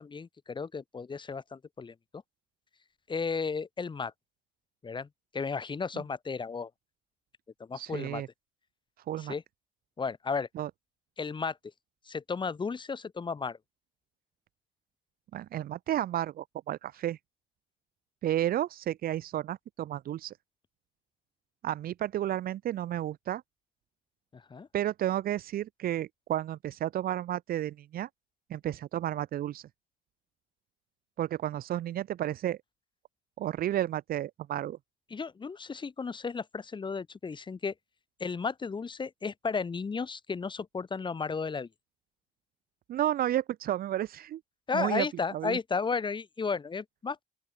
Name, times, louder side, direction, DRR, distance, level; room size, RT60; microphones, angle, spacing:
voice 1, 0.0-1.9 3.1-4.1 4.8-5.1 5.3-6.7 7.6-8.2 9.2-9.4 10.0-10.5 11.2-11.6 12.1-13.6 24.3-24.7 35.1-37.7 38.2-41.7 44.7-47.2, left 5 dB, 30° left, 4.4 m, -34 dB
voice 2, 7.7-8.3 9.1-9.3 10.5-10.7 15.3-17.2 18.2-20.3 21.6-23.4 24.7-28.1 28.5-29.7 31.2-32.6 33.4-34.8 42.9-44.4 44.7-45.1 45.3-45.6, right 12 dB, 60° right, 1.4 m, -32 dB
open air
cardioid pair, 110°, 17 cm